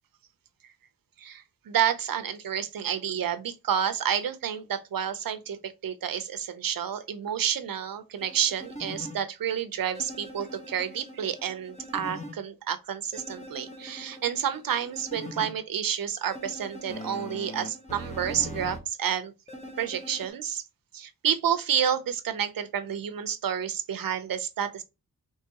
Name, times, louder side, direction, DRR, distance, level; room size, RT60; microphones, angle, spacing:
voice 1, 1.2-19.3 19.8-20.6 20.9-24.8, right 9 dB, 70° right, 0.7 m, -30 dB
sound 1, 8.2-9.2 9.9-12.3 13.1-15.5 16.3-18.8 19.5-20.3, left 1 dB, 20° left, 1.0 m, -41 dB
4.6 x 3.4 x 2.9 m
wide cardioid pair, 120°, 35 cm